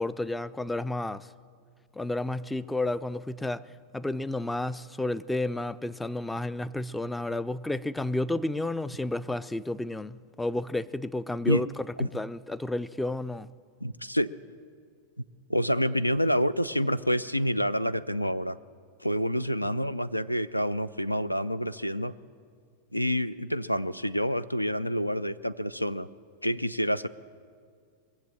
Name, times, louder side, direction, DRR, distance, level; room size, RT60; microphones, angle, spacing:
voice 1, 0.0-1.3 1.9-13.5, left 2 dB, 5° left, 16 dB, 0.3 m, -31 dB
voice 2, 13.8-14.3 15.5-18.6 19.0-22.1 22.9-26.1 26.4-27.1, equal, 85° left, 16 dB, 0.3 m, -28 dB
22.0 x 7.3 x 7.5 m, 2.1 s
figure-of-eight pair, 90°, 0 cm